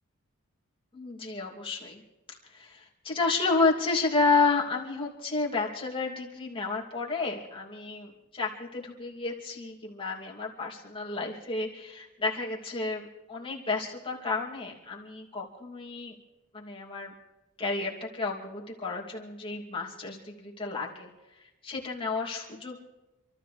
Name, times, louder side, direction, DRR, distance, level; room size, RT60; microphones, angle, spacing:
voice 1, 0.9-2.0 2.5-16.1 16.5-17.1 17.6-21.1 21.4-22.8, left 4 dB, 25° left, -3 dB, 2.7 m, -31 dB
27.5 x 13.5 x 3.4 m, 1.1 s
head